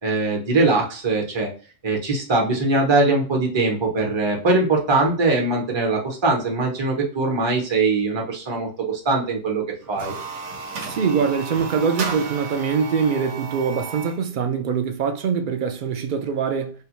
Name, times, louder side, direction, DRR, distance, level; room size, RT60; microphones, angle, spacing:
voice 1, 0.0-1.5 1.8-10.1, right 3 dB, 25° right, 0.8 m, -21 dB
sound 1, 9.8-14.2, right 4 dB, 90° right, 1.0 m, -33 dB
voice 2, 10.8-16.7, right 6 dB, 60° right, 0.6 m, -23 dB
2.7 x 2.2 x 2.9 m
omnidirectional pair, 1.2 m